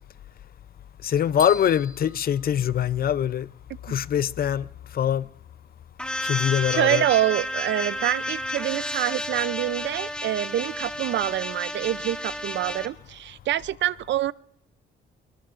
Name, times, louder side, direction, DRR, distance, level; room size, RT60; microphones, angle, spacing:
voice 1, 1.0-3.5 3.8-4.7 4.9-5.3 6.2-7.1, left 9 dB, 50° left, 0.5 m, -23 dB
sound 1, 1.4-3.3, equal, 20° right, 2.5 m, -43 dB
sound 2, 6.0-12.9, left 1 dB, 5° left, 1.6 m, -31 dB
voice 2, 6.7-14.3, right 13 dB, 65° right, 0.5 m, -26 dB
28.5 x 18.5 x 2.5 m
cardioid pair, 90°, 20 cm